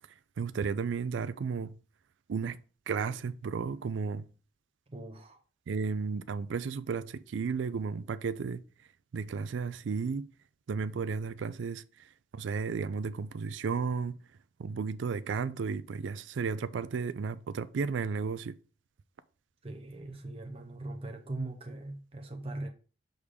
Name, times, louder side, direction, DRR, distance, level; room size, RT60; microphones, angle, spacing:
voice 1, 0.4-1.8 2.3-2.6 2.9-4.3 5.7-8.6 9.1-10.3 10.7-14.2 14.6-18.6, right 5 dB, 90° right, 0.4 m, -33 dB
voice 2, 4.9-5.4 19.6-22.7, right 2 dB, 30° right, 0.6 m, -40 dB
6.4 x 3.6 x 5.0 m
head